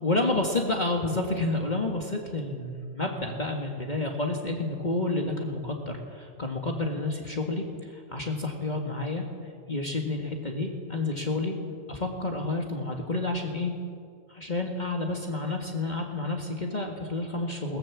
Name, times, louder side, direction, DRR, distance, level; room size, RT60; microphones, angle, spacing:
voice 1, 0.0-9.3 9.7-11.5 11.9-13.7 14.3-17.8, left 2 dB, 35° left, 1 dB, 2.0 m, -30 dB
21.0 x 20.0 x 7.3 m, 2.2 s
omnidirectional pair, 1.4 m